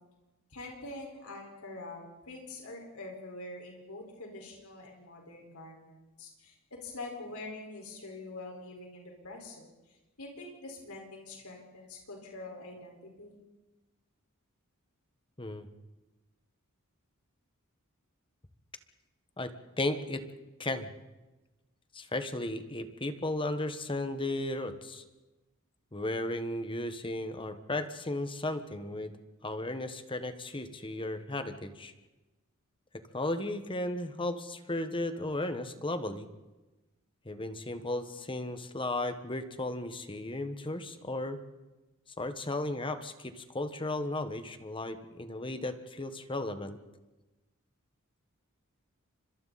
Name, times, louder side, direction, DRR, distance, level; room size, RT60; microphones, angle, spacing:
voice 1, 0.5-6.5 6.8-13.4, left 2 dB, 85° left, 0 dB, 5.0 m, -45 dB
voice 2, 19.4-20.2 20.6-20.9 21.9-25.0 25.9-29.1 29.4-31.9 33.1-36.3 37.2-41.4 42.2-46.8, left 2 dB, 25° left, 9 dB, 1.4 m, -35 dB
30.0 x 25.5 x 4.2 m, 1.1 s
head